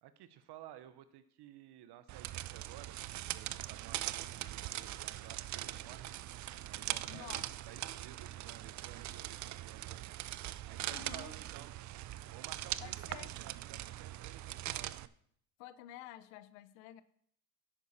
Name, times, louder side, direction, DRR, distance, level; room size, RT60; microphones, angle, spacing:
voice 1, 0.0-6.2 6.6-7.3 7.7-10.2 10.7-11.7 12.3-15.1, right 12 dB, 55° right, 12 dB, 1.2 m, -55 dB
sound 1, 2.1-15.1, right 14 dB, 40° right, 0.5 m, -41 dB
voice 2, 7.1-7.5 10.9-11.3 12.8-13.3 15.6-17.0, left 13 dB, 75° left, 15 dB, 0.8 m, -50 dB
10.5 x 8.9 x 4.3 m, 0.66 s
hypercardioid pair, 75°, 48 cm